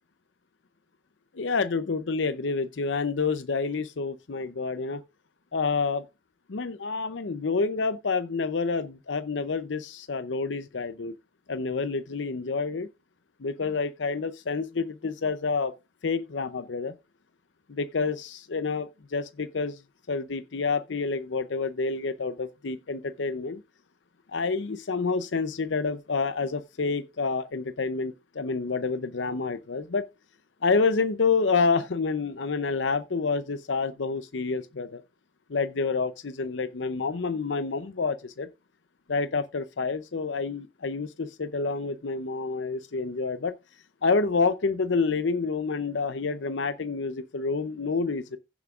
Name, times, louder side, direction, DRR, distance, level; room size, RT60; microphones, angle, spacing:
voice 1, 1.3-5.0 5.5-6.0 6.5-11.1 11.5-12.9 13.4-15.7 16.0-16.9 17.7-19.8 20.1-23.6 24.3-30.1 30.6-35.0 35.5-38.5 39.1-43.5 44.0-48.4, left 4 dB, 75° left, 0.6 m, -28 dB
15.5 x 7.2 x 2.4 m
head